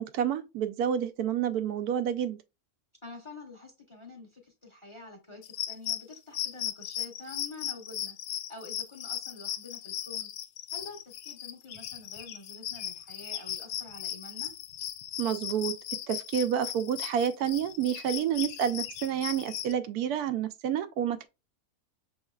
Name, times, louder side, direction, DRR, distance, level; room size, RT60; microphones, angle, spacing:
voice 1, 0.0-2.4 15.2-15.7 16.1-21.3, right 9 dB, 85° right, 1.1 m, -29 dB
voice 2, 3.0-10.3 10.7-14.5, left 3 dB, 25° left, 0.8 m, -47 dB
sound 1, 5.4-19.7, left 11 dB, 85° left, 1.1 m, -37 dB
6.3 x 3.1 x 2.3 m
omnidirectional pair, 1.6 m